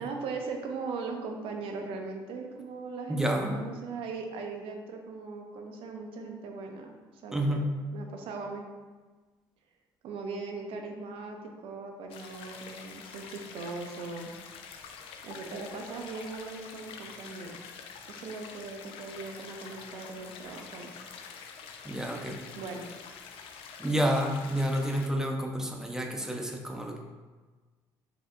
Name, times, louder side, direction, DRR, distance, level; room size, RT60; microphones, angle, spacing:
voice 1, 0.0-3.2 3.5-6.9 7.2-7.6 7.9-8.6 10.0-11.4 11.6-14.3 15.2-17.6 18.1-20.9 22.5-22.8, right 4 dB, 70° right, 3 dB, 0.6 m, -39 dB
voice 2, 3.1-3.6 7.3-7.7 21.8-22.4 23.8-27.0, equal, 5° right, 1 dB, 0.6 m, -29 dB
sound 1, 12.1-25.1, left 6 dB, 70° left, 0.4 m, -46 dB
4.2 x 2.7 x 2.5 m, 1.3 s
supercardioid pair, 65°, 10 cm